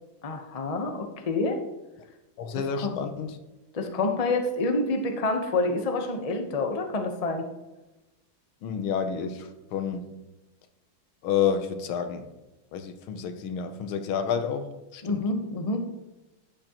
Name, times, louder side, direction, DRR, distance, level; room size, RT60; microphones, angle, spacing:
voice 1, 0.2-1.6 2.5-2.9 3.7-7.4 15.0-15.9, left 2 dB, 40° left, 0.5 m, -28 dB
voice 2, 2.4-3.4 8.6-10.1 11.2-12.3 12.7-15.2, left 7 dB, 85° left, 1.7 m, -29 dB
12.0 x 9.0 x 3.0 m
omnidirectional pair, 2.2 m